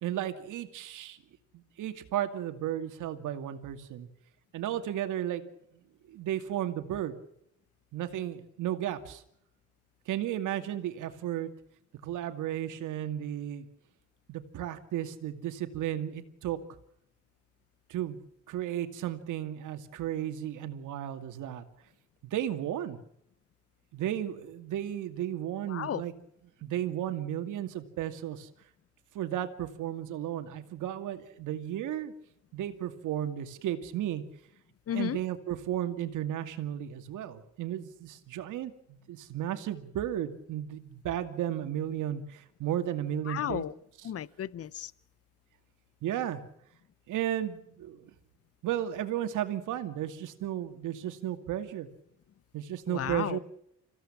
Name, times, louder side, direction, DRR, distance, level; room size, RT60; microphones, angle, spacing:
voice 1, 0.0-1.2 1.5-4.1 4.5-5.4 6.1-7.1 7.9-9.2 10.1-11.5 12.0-13.7 14.3-16.6 17.9-21.6 22.2-23.0 23.9-26.1 26.6-28.5 29.1-32.1 32.5-34.2 34.9-43.6 44.0-44.1 46.0-46.4 47.1-48.0 48.6-51.9 52.5-53.4, right 11 dB, 85° right, 2.4 m, -34 dB
voice 2, 25.7-26.0 34.9-35.2 43.3-43.7 44.0-44.9 52.9-53.4, left 10 dB, 50° left, 0.9 m, -33 dB
26.5 x 16.0 x 7.4 m
cardioid pair, 90°, 30 cm